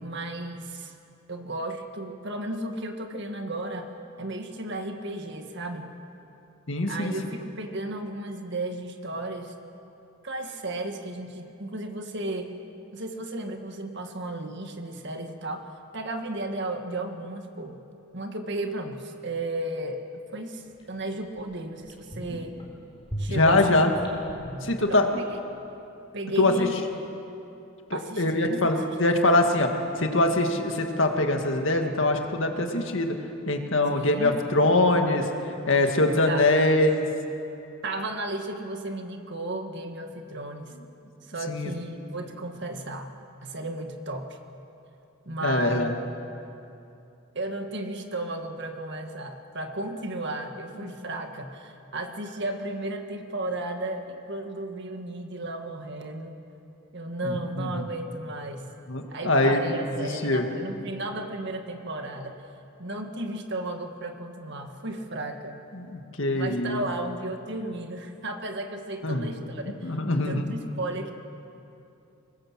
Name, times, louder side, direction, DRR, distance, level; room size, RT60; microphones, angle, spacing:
voice 1, 0.0-0.9 1.3-3.9 4.2-5.9 6.9-9.5 10.2-12.5 12.9-17.8 18.1-20.6 20.9-22.6 23.2-23.8 24.9-25.4 26.1-26.7 27.9-29.1 33.9-34.4 35.8-35.9 36.3-36.5 37.8-40.7 41.3-43.1 43.4-44.4 45.3-45.9 47.3-56.4 56.9-58.7 59.1-62.4 62.8-65.6 66.3-69.9 70.3-71.1, right 2 dB, 55° right, 5 dB, 1.9 m, -34 dB
voice 2, 6.7-7.1 23.3-23.9 24.6-25.2 26.4-26.7 27.9-29.7 30.0-33.2 33.5-35.2 35.7-37.1 41.5-41.7 45.4-45.9 50.8-50.9 57.2-57.3 57.6-57.8 58.9-59.7 60.0-60.4 65.7-66.8 69.0-69.3 69.8-70.5, left 2 dB, 60° left, 4 dB, 2.0 m, -23 dB
sound 1, 20.8-20.9 21.4-21.5 21.8-22.6 23.0-25.3 25.6-25.7, equal, 25° left, 3.8 m, -37 dB
24.5 x 20.0 x 7.6 m, 2.8 s
head